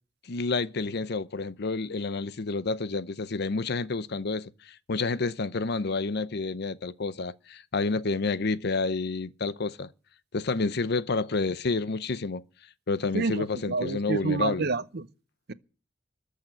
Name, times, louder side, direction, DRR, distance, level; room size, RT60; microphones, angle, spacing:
voice 1, 0.2-9.9 10.3-12.4 12.9-14.7, left 3 dB, 60° left, 0.7 m, -29 dB
voice 2, 13.1-15.1 15.5-15.6, right 3 dB, 55° right, 0.8 m, -29 dB
14.0 x 6.6 x 9.8 m
head